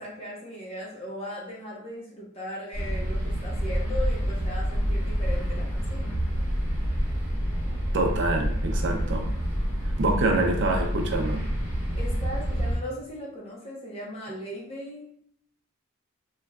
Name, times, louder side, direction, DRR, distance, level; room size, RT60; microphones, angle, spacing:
voice 1, 0.0-6.2 12.0-15.1, equal, 30° left, -4 dB, 1.0 m, -38 dB
sound 1, 2.7-12.8, equal, 10° right, 1.4 m, -27 dB
voice 2, 7.9-9.3 10.0-11.4, right 2 dB, 60° right, 3 dB, 0.5 m, -26 dB
3.5 x 3.1 x 2.3 m, 0.65 s
head